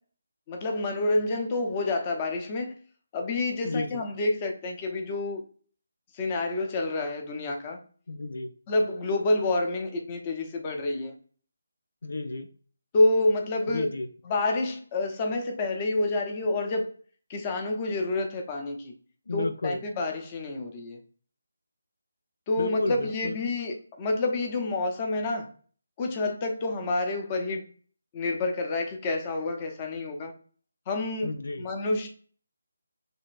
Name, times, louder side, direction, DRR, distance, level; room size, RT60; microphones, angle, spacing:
voice 1, 0.5-2.7 3.1-5.4 6.1-7.8 8.7-11.1 12.9-13.9 14.2-16.9 17.3-18.9 19.3-21.0 22.5-25.5 26.0-27.6 28.1-30.3 30.9-31.3 31.6-32.1, left 2 dB, 25° left, 0.8 m, -28 dB
voice 2, 3.6-4.0 8.1-8.5 12.0-12.5 13.7-14.1 19.3-19.8 22.6-23.4 31.2-31.7, left 2 dB, 65° left, 0.5 m, -32 dB
6.4 x 3.2 x 2.5 m
figure-of-eight pair, 155°, 0 cm